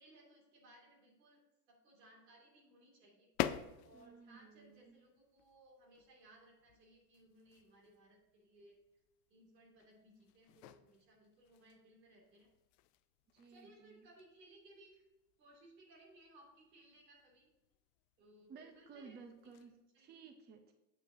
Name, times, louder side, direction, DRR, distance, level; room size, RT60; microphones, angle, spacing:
voice 1, 0.0-1.4 1.7-3.3 3.8-8.8 9.3-12.5 13.5-15.0 15.4-17.5 18.2-19.2 19.9-20.0, right 1 dB, 85° right, -1 dB, 2.6 m, -63 dB
sound 1, 3.3-19.8, left 13 dB, 55° left, 0.5 m, -49 dB
voice 2, 3.9-5.0 13.3-14.1 18.5-20.7, right 5 dB, 20° right, 6 dB, 0.6 m, -56 dB
8.0 x 6.8 x 2.7 m, 1.0 s
hypercardioid pair, 105°, 48 cm